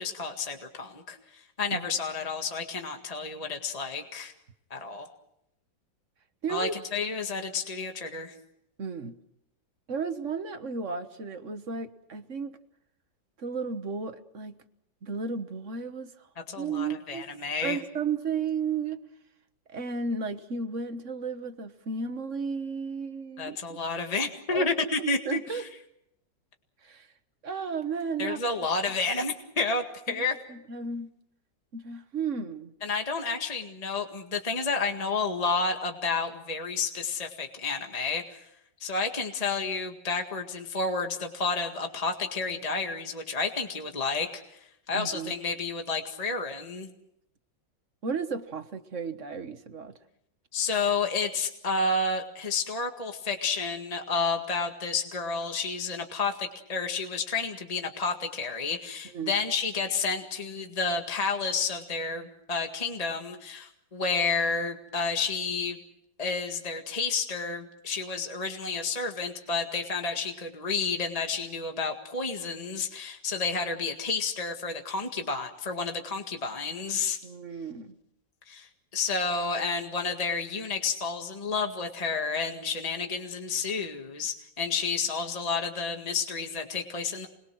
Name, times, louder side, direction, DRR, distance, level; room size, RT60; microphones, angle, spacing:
voice 1, 0.0-4.3 4.7-5.1 6.5-8.3 16.5-17.8 23.4-25.6 28.2-30.4 32.8-38.4 38.8-44.6 44.9-46.9 50.5-65.8 66.2-77.2 78.5-87.3, left 4 dB, 20° left, 4 dB, 1.8 m, -30 dB
voice 2, 6.4-6.8 8.8-9.2 9.9-12.6 13.4-14.6 15.0-16.3 16.6-17.3 17.6-19.0 19.7-23.8 24.5-24.7 25.0-25.7 26.8-27.1 27.4-28.4 30.2-30.3 30.5-31.1 31.7-32.7 44.9-45.3 48.0-50.0 59.1-59.3 77.2-78.0, right 5 dB, 45° right, 9 dB, 1.5 m, -33 dB
30.0 x 21.5 x 6.2 m, 0.79 s
omnidirectional pair, 2.1 m